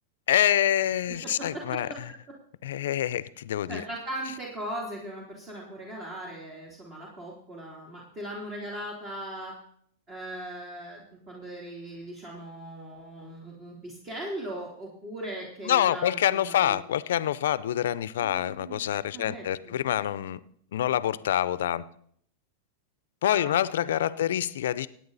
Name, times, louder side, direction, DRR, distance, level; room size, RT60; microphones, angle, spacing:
voice 1, 0.3-2.1 2.6-3.8 15.7-20.4 20.7-21.8 23.2-24.9, left 11 dB, 80° left, 18 dB, 0.5 m, -26 dB
voice 2, 3.7-9.5 10.1-16.8 18.2-18.8 19.1-19.8 23.3-23.6, right 1 dB, 30° right, -2 dB, 3.3 m, -39 dB
17.0 x 9.0 x 4.1 m, 0.66 s
hypercardioid pair, 120°, 0 cm